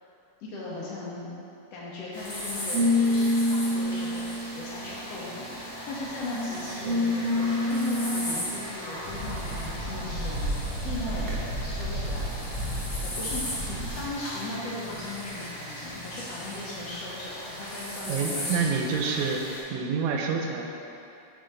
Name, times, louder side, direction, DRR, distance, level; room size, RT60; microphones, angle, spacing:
voice 1, 0.4-1.3 1.7-4.3 4.6-5.5 5.8-7.1 7.3-10.5 10.8-11.3 11.6-12.3 13.0-18.6, left 2 dB, 70° left, -6 dB, 1.7 m, -38 dB
sound 1, 2.1-19.6, equal, 35° left, 1.1 m, -37 dB
sound 2, 2.7-5.6 6.3-8.3 11.2-11.5 12.6-12.9 13.4-14.5, left 1 dB, 55° right, 1.1 m, -27 dB
sound 3, 9.0-14.1, right 1 dB, 50° left, 2.1 m, -33 dB
voice 2, 18.1-19.4 19.7-20.7, right 5 dB, 80° right, 2 dB, 1.8 m, -27 dB
5.6 x 5.0 x 3.8 m, 2.7 s
omnidirectional pair, 3.3 m